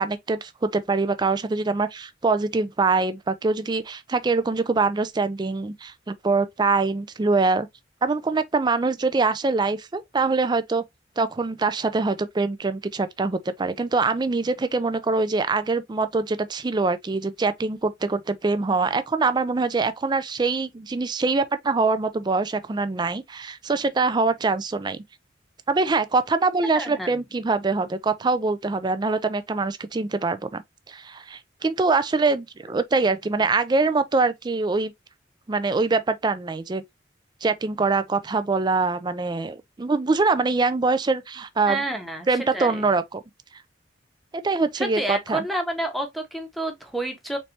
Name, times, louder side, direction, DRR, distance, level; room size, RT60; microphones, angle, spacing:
voice 1, 0.0-7.7 8.0-10.8 11.2-25.0 25.7-30.6 30.9-34.9 35.5-36.8 37.4-41.8 42.3-43.2 44.4-45.4, right 3 dB, 25° right, 0.4 m, -24 dB
voice 2, 26.8-27.2 41.7-42.3 42.5-42.9 44.8-47.4, right 1 dB, ahead, 0.9 m, -29 dB
4.1 x 3.3 x 2.7 m
head